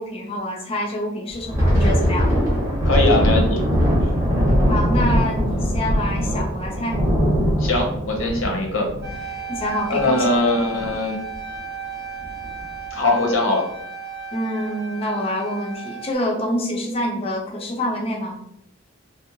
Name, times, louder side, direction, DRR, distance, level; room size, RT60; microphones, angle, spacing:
voice 1, 0.0-2.3 4.7-7.0 9.5-10.4 14.3-18.4, left 1 dB, 25° left, 0 dB, 0.3 m, -26 dB
Thunder, 1.3-10.4 10.7-10.9 11.3-11.6 12.2-12.7, equal, 15° right, 0.6 m, -21 dB
voice 2, 2.8-3.6 7.6-8.9 9.2-9.4 9.9-11.2 12.9-13.6, left 2 dB, 70° left, 1 dB, 0.7 m, -21 dB
sound 1, 9.0-16.1, right 6 dB, 50° right, 0.7 m, -34 dB
2.7 x 2.1 x 2.5 m, 0.74 s
head